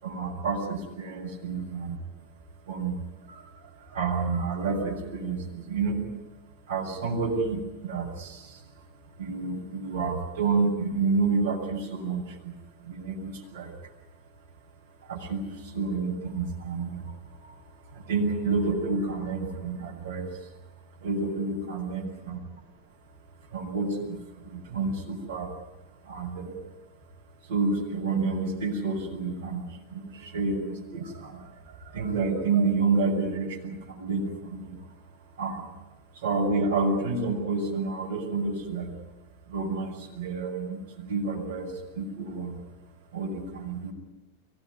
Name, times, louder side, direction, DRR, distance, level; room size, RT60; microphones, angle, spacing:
voice 1, 0.0-2.0 2.7-3.0 3.3-3.4 3.9-6.0 6.7-8.6 9.2-12.5 12.8-13.7 15.1-17.1 17.4-17.5 17.9-20.3 21.0-22.4 23.5-24.2 24.4-25.5 26.0-26.6 27.5-31.4 31.8-34.8 35.4-35.7 36.2-38.9 39.5-42.6 43.1-43.9, right 4 dB, 55° right, -2 dB, 7.2 m, -29 dB
24.0 x 19.0 x 9.8 m, 1.1 s
figure-of-eight pair, 90°, 0 cm